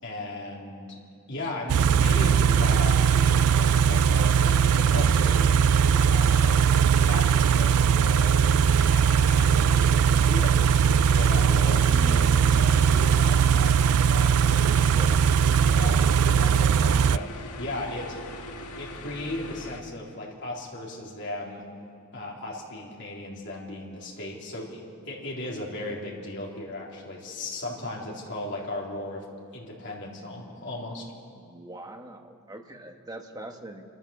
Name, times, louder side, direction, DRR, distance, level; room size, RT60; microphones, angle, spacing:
voice 1, 0.0-1.0 1.3-5.5 5.9-6.6 7.0-8.5 8.8-15.0 15.4-18.2 18.8-21.7 22.1-29.2 29.5-31.0, left 1 dB, 50° left, -3 dB, 3.6 m, -36 dB
Car / Idling, 1.7-17.2, right 7 dB, 85° right, 0.4 m, -20 dB
sound 1, 2.1-19.8, left 1 dB, 85° left, 1.7 m, -40 dB
voice 2, 11.8-12.7 14.9-15.2 31.3-33.8, right 1 dB, 15° right, 4 dB, 1.2 m, -41 dB
27.5 x 13.5 x 7.0 m, 2.4 s
head